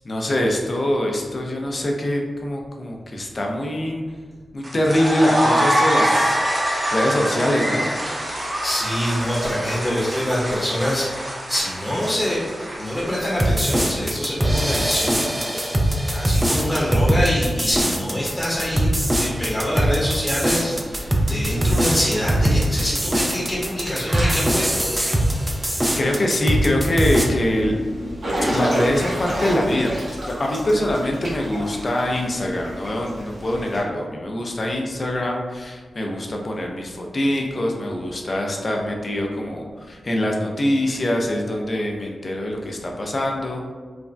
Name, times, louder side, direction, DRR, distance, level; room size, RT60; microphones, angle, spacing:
voice 1, 0.0-4.1 4.5-6.4 6.9-7.9 26.0-28.2 28.5-43.7, left 1 dB, 50° left, 1 dB, 0.5 m, -23 dB
sound 1, 4.6-14.0, equal, 40° right, 0.8 m, -25 dB
voice 2, 8.6-11.1 11.5-25.8, equal, 10° left, -6 dB, 0.9 m, -25 dB
sound 2, 13.4-27.3, right 1 dB, 15° right, 0.4 m, -21 dB
Water / Splash splatter / Drip, 18.5-33.8, equal, 80° right, 1.0 m, -32 dB
3.2 x 2.1 x 2.5 m, 1.5 s
cardioid pair, 50°, 0 cm